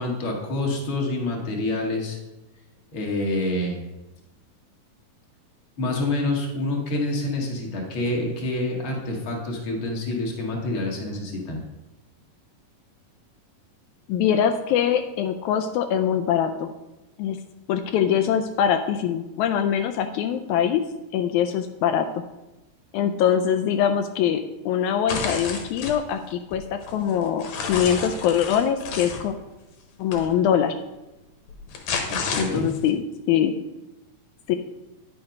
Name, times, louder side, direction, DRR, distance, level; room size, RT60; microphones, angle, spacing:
voice 1, 0.0-2.2 2.9-3.8 5.8-11.6 32.1-32.7, left 2 dB, 45° left, 0 dB, 2.0 m, -27 dB
voice 2, 14.1-16.7 17.2-17.4 17.7-20.8 21.1-22.1 22.9-29.3 30.0-30.7 32.4-33.0 33.3-33.5 34.5-34.6, left 9 dB, 90° left, 7 dB, 1.7 m, -23 dB
sound 1, 25.1-26.0 26.5-29.2 30.1-30.3 31.5-32.9, left 5 dB, 70° left, 2.6 m, -31 dB
10.0 x 5.8 x 5.2 m, 1.0 s
omnidirectional pair, 4.0 m